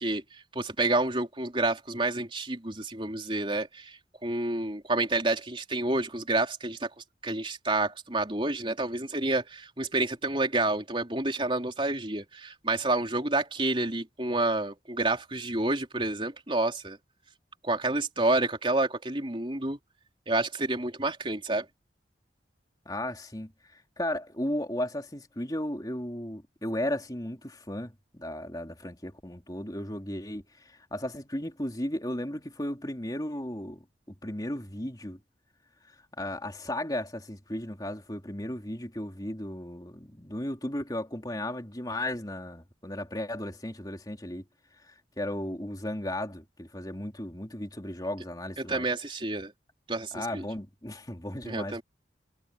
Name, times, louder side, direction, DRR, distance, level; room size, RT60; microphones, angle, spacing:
voice 1, 0.0-6.9 7.2-17.0 17.6-19.8 20.3-21.7 48.6-49.5 49.9-50.4 51.4-51.8, right 2 dB, 30° right, 3.6 m, -29 dB
voice 2, 22.8-33.8 34.2-35.2 35.9-44.4 44.9-48.8 50.1-51.8, left 1 dB, 20° left, 3.3 m, -35 dB
head